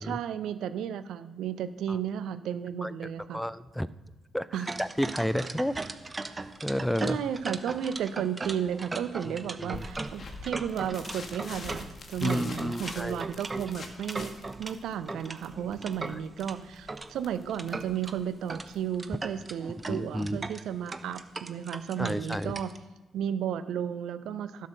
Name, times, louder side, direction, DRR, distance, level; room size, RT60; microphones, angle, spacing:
voice 1, 0.0-3.4 4.5-4.7 7.0-14.3 14.6-22.7 23.1-24.7, right 9 dB, 70° right, 13 dB, 0.5 m, -33 dB
voice 2, 2.8-3.9 4.3-5.7 6.6-7.2 9.2-9.8 12.2-13.2 16.1-16.2 19.9-20.4 22.0-22.6, equal, 5° left, 16 dB, 0.5 m, -31 dB
sound 1, 4.7-14.7 15.1-17.1 17.5-18.1 18.5-18.7 18.9-22.8, right 3 dB, 30° right, 0.9 m, -38 dB
sound 2, 9.7-18.9, left 3 dB, 50° left, 1.8 m, -45 dB
11.5 x 6.6 x 6.5 m, 1.2 s
hypercardioid pair, 45°, 0 cm